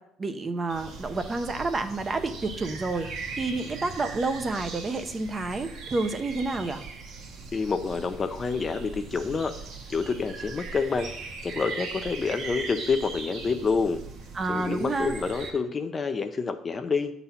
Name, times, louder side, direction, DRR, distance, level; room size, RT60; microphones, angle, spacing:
voice 1, 0.2-3.1 3.4-6.8 14.3-15.2, right 3 dB, 25° right, 8 dB, 0.6 m, -29 dB
sound 1, 0.7-15.5, right 4 dB, 60° right, 1.4 m, -40 dB
voice 2, 7.5-9.5 9.9-11.1 11.4-14.0 14.5-17.1, left 4 dB, 25° left, 8 dB, 0.5 m, -28 dB
8.5 x 4.1 x 5.7 m, 0.71 s
cardioid pair, 130°, 0 cm